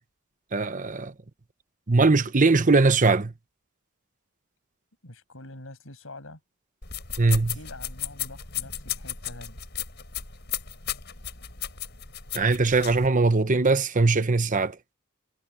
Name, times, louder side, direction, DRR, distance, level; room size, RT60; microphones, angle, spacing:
voice 1, 0.5-1.1 1.9-3.3 7.2-7.5 12.3-14.8, right 3 dB, 40° right, 1.0 m, -21 dB
voice 2, 5.0-6.4 7.5-9.6, left 2 dB, 70° left, 6.9 m, -45 dB
sound 1, 6.8-13.1, left 9 dB, 55° left, 5.6 m, -35 dB
head